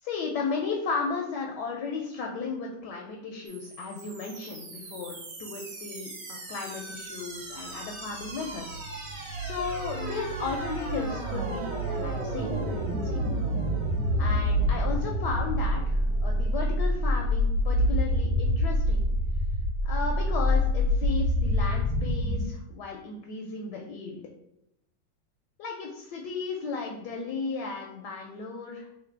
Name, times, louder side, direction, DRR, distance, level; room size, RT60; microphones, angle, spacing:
voice 1, 0.0-8.8 9.1-13.2 14.2-19.1 19.8-24.2 25.6-28.9, left 4 dB, 70° left, 1 dB, 1.0 m, -35 dB
sound 1, 3.5-22.5, left 1 dB, 55° right, 1.4 m, -28 dB
sound 2, 7.4-17.2, right 4 dB, 90° right, 1.4 m, -37 dB
3.3 x 2.6 x 4.4 m, 0.83 s
omnidirectional pair, 2.2 m